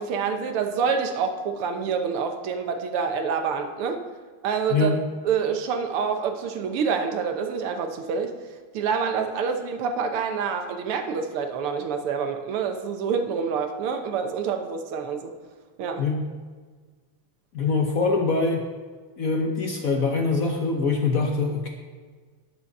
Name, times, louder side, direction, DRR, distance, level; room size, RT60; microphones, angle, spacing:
voice 1, 0.0-4.0 4.4-4.9 5.2-8.4 8.7-15.3 15.8-16.0, right 6 dB, 85° right, 6 dB, 1.9 m, -27 dB
voice 2, 17.5-18.6 19.2-21.7, left 4 dB, 55° left, 2 dB, 1.0 m, -23 dB
10.0 x 6.9 x 6.5 m, 1.5 s
omnidirectional pair, 2.4 m